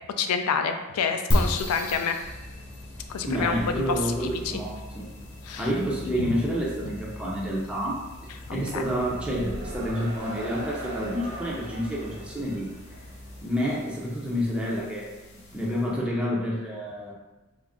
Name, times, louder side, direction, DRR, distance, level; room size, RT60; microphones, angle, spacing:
voice 1, 0.2-2.2 3.1-4.1 4.4-4.6 5.4-5.7 6.1-6.3 8.7-8.8, left 6 dB, 85° left, 7 dB, 0.4 m, -28 dB
sound 1, 1.3-16.0, equal, 55° left, 0.9 m, -36 dB
sound 2, 2.2-13.4, left 1 dB, 40° right, 0.8 m, -42 dB
voice 2, 3.3-5.1 5.6-8.0 8.5-12.7 13.4-15.1 15.5-17.1, equal, 5° right, -5 dB, 0.5 m, -29 dB
sound 3, 8.6-13.1, right 1 dB, 70° right, 0.9 m, -41 dB
3.0 x 2.5 x 3.5 m, 1.1 s
head